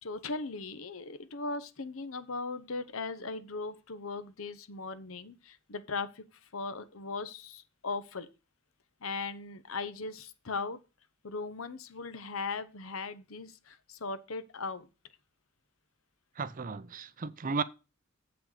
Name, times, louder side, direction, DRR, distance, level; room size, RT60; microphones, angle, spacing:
voice 1, 0.0-6.2 6.5-8.3 9.0-10.8 11.2-14.9, left 4 dB, 75° left, 0.9 m, -38 dB
voice 2, 16.4-17.6, right 4 dB, 40° right, 0.5 m, -34 dB
7.9 x 6.1 x 4.9 m
head